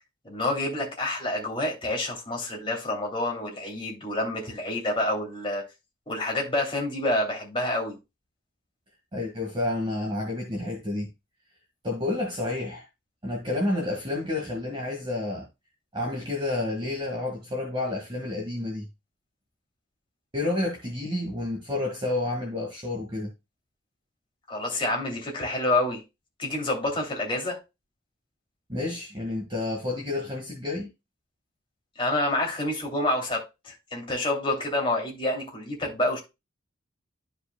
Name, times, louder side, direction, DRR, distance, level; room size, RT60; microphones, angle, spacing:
voice 1, 0.2-5.6 6.1-8.0 24.5-26.0 26.4-27.6 32.0-36.2, left 1 dB, 25° left, 2.6 m, -28 dB
voice 2, 9.1-11.1 11.8-12.8 13.2-15.5 15.9-18.9 20.3-23.3 28.7-30.9, left 2 dB, 25° right, 1.7 m, -30 dB
13.0 x 5.0 x 2.2 m
head